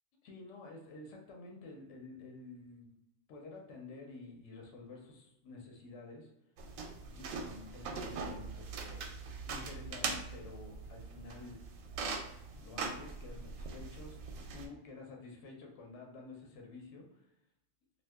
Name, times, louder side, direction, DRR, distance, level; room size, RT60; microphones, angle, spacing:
voice 1, 0.2-2.9 3.3-6.3 7.1-9.0 9.4-11.6 12.6-14.2 14.5-17.3, left 3 dB, 65° left, 1 dB, 1.0 m, -50 dB
sound 1, 6.6-14.7, right 4 dB, 80° right, 1.0 m, -42 dB
2.7 x 2.5 x 3.4 m, 0.84 s
omnidirectional pair, 1.4 m